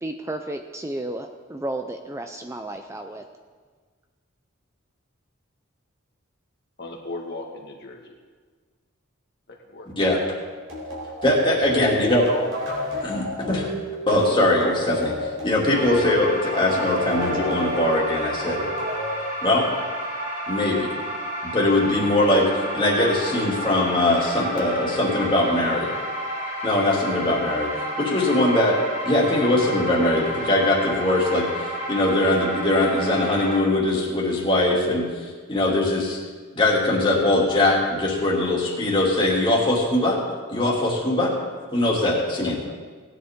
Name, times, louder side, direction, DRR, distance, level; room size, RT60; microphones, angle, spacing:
voice 1, 0.0-3.2, right 1 dB, 15° right, 6 dB, 0.4 m, -32 dB
voice 2, 6.8-8.1 9.7-9.9 42.1-42.7, left 2 dB, 55° left, 0 dB, 1.6 m, -36 dB
sound 1, 10.7-19.9, left 1 dB, 65° right, 4.1 m, -31 dB
voice 3, 11.2-12.3 13.0-13.7 14.1-18.7 19.4-19.6 20.5-20.9 21.5-25.9 26.6-27.7 28.0-28.8 29.1-36.2 36.5-40.2 40.5-41.3 41.7-42.6, left 1 dB, 25° left, -4 dB, 2.5 m, -21 dB
sound 2, 15.7-33.6, equal, 35° right, 4.6 m, -31 dB
18.0 x 10.0 x 3.6 m, 1.5 s
head